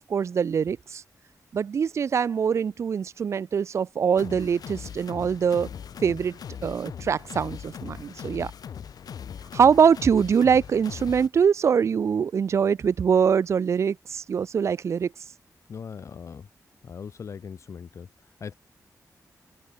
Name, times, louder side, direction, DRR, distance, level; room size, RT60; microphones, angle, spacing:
voice 1, 0.1-1.0 1.5-5.7 6.0-8.5 9.5-15.1, right 7 dB, 50° right, 0.4 m, -23 dB
sound 1, 4.2-11.3, left 8 dB, 80° left, 2.2 m, -40 dB
voice 2, 15.7-16.5 16.8-18.5, left 6 dB, 50° left, 0.9 m, -40 dB
wide cardioid pair, 170°, 6 cm